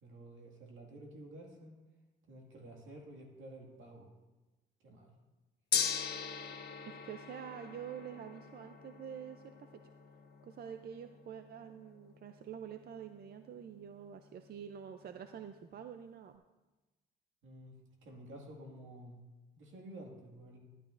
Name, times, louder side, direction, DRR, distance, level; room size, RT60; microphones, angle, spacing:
voice 1, 0.0-1.8 2.3-4.1 4.8-5.1 17.4-17.8 18.0-19.2 19.5-20.6, right 1 dB, 80° right, 1 dB, 2.1 m, -51 dB
Gong, 5.7-15.9, left 6 dB, 55° left, 1.1 m, -42 dB
voice 2, 6.9-9.7 10.4-16.4, right 8 dB, 55° right, 8 dB, 0.5 m, -47 dB
12.5 x 12.0 x 2.6 m, 1.1 s
cardioid pair, 90°, 20 cm